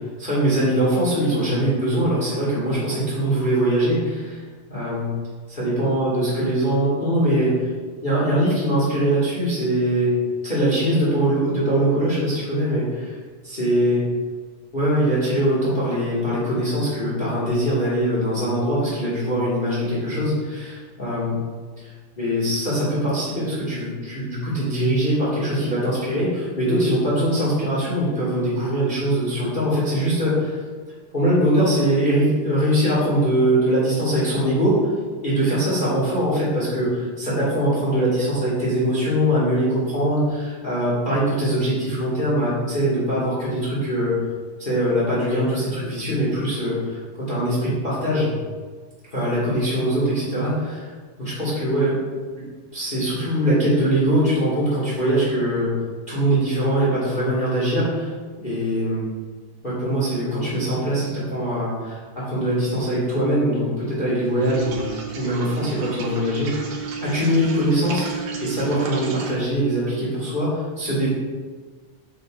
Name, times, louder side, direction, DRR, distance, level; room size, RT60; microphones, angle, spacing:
voice 1, 0.2-4.4 4.7-5.1 5.5-7.6 8.0-10.1 10.4-13.1 13.4-14.0 14.7-21.3 22.2-30.6 31.1-34.8 35.2-44.1 44.6-48.3 49.1-50.9 51.2-52.0 52.4-55.7 56.1-58.1 58.4-59.0 59.6-66.6 67.0-68.1 68.4-71.1, right 1 dB, 25° left, -8 dB, 1.7 m, -22 dB
sound 1, 64.4-69.4, right 6 dB, 85° right, 1.8 m, -32 dB
8.0 x 6.5 x 2.4 m, 1.5 s
omnidirectional pair, 2.3 m